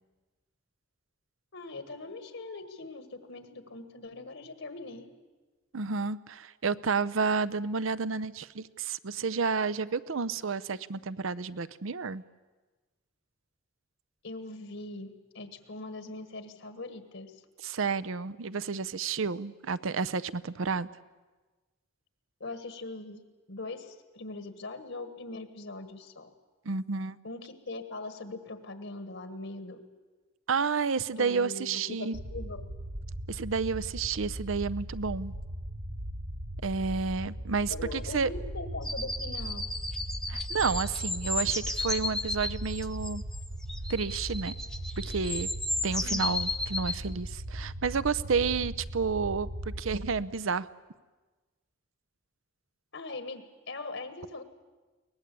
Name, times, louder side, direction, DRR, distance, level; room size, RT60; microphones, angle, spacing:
voice 1, 1.5-5.1 14.2-17.4 22.4-26.3 27.2-29.8 31.2-32.6 37.7-39.7 46.0-46.3 52.9-54.4, left 2 dB, 70° left, 9 dB, 1.5 m, -41 dB
voice 2, 5.7-12.2 17.6-20.9 26.7-27.2 30.5-32.2 33.3-35.3 36.6-38.3 40.3-43.2 43.9-44.5 45.0-45.5 45.8-50.7, right 5 dB, 75° right, 18 dB, 0.7 m, -30 dB
sound 1, 32.1-50.2, right 1 dB, 45° right, 1.0 m, -39 dB
sound 2, 38.8-47.0, left 2 dB, 5° left, 0.7 m, -34 dB
23.0 x 19.0 x 8.3 m, 1.3 s
head